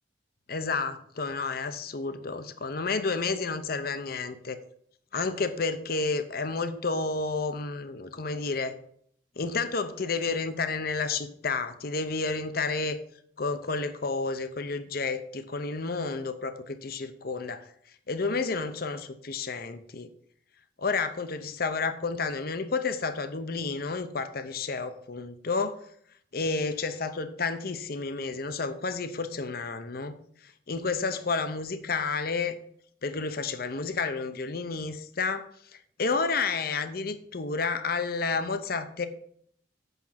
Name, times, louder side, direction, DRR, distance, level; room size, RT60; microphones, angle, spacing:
voice 1, 0.5-4.6 5.1-8.8 9.4-13.0 13.4-17.7 18.1-20.1 20.8-25.9 26.3-30.2 30.7-32.6 33.0-35.5 36.0-39.1, left 4 dB, 55° left, 10 dB, 0.7 m, -30 dB
8.2 x 6.0 x 5.8 m, 0.64 s
head